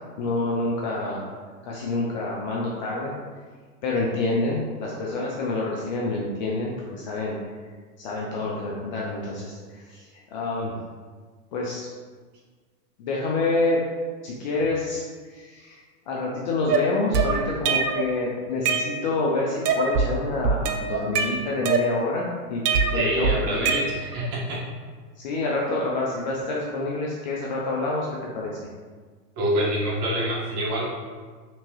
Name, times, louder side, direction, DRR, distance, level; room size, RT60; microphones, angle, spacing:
voice 1, 0.2-1.3 1.6-3.1 3.8-7.4 8.0-10.8 11.5-11.9 13.0-13.8 14.2-15.0 15.3-15.8 16.1-22.6 22.9-23.8 25.2-28.1 28.3-28.6, left 2 dB, 35° left, -4 dB, 0.4 m, -27 dB
sound 1, 16.7-18.1 18.4-19.3 19.6-20.1 20.4-22.2 22.6-24.3, right 4 dB, 80° right, 0.6 m, -24 dB
voice 2, 22.9-24.6 29.4-30.9, right 1 dB, 45° right, -4 dB, 1.2 m, -26 dB
3.4 x 2.9 x 2.9 m, 1.5 s
hypercardioid pair, 115°, 46 cm